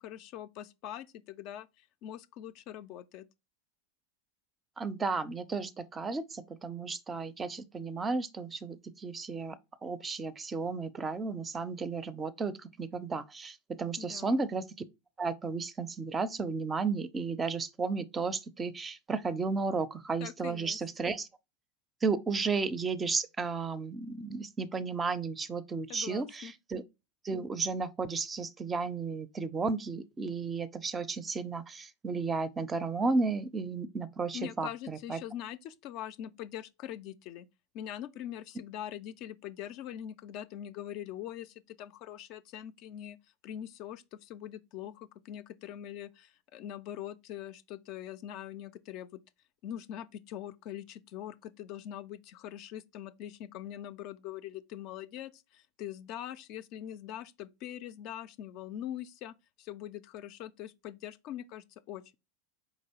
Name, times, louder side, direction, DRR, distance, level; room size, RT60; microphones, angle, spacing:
voice 1, 0.0-3.3 14.0-14.4 20.2-20.8 25.9-26.5 34.3-37.5 37.7-43.2 43.4-49.1 49.6-62.1, left 11 dB, 50° left, 0.3 m, -43 dB
voice 2, 4.8-9.6 9.8-14.6 15.2-21.3 22.0-26.8 27.2-35.2, right 4 dB, 20° right, 0.4 m, -33 dB
4.6 x 2.9 x 2.8 m
hypercardioid pair, 90°, 0 cm